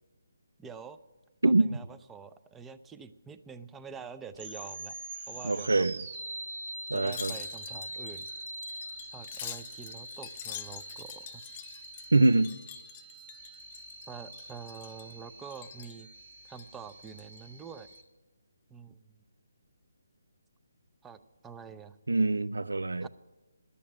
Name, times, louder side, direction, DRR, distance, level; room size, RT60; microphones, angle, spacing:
voice 1, 0.6-1.0 1.4-4.9 5.3-5.9 6.9-8.3 9.1-11.4 14.1-16.1 16.5-17.9 18.7-19.0 21.0-21.2 21.4-22.0 23.0-23.1, right 6 dB, 10° right, 0.5 m, -46 dB
sound 1, 4.3-18.0, right 2 dB, 50° right, 1.7 m, -44 dB
voice 2, 5.4-6.0 6.9-7.3 12.1-12.5 22.1-23.1, right 2 dB, 90° right, 0.5 m, -24 dB
Wind chime, 7.0-14.1 14.3-15.1 15.5-16.0 16.5-17.4 17.8-18.0, left 10 dB, 30° left, 0.6 m, -46 dB
11.0 x 8.5 x 9.8 m
figure-of-eight pair, 155°, 0 cm